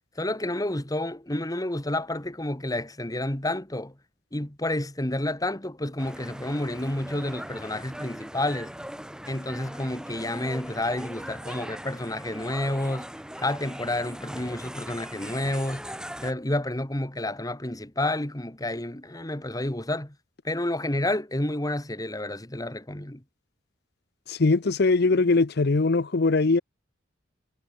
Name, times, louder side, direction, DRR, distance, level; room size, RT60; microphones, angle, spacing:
voice 1, 0.2-3.9 4.3-8.7 9.3-13.1 13.4-15.9 16.2-20.2 20.4-23.2, left 1 dB, 20° left, 2.1 m, -30 dB
sound 1, 6.0-16.3, equal, 5° right, 5.8 m, -40 dB
voice 2, 24.3-26.6, left 3 dB, 60° left, 0.7 m, -21 dB
head